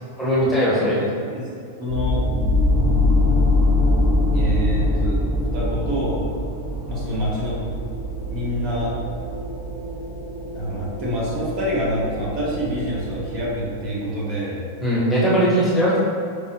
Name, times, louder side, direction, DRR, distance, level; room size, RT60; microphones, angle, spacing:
voice 1, 0.2-1.0 14.8-16.0, equal, 5° left, -9 dB, 1.2 m, -19 dB
voice 2, 1.8-2.2 4.3-5.2 5.5-6.2 6.9-7.6 8.3-8.9 10.5-14.6, equal, 45° right, -6 dB, 1.3 m, -26 dB
sound 1, 1.9-13.8, left 1 dB, 20° right, 0.9 m, -23 dB
4.8 x 3.2 x 2.9 m, 2.4 s
supercardioid pair, 135°, 0 cm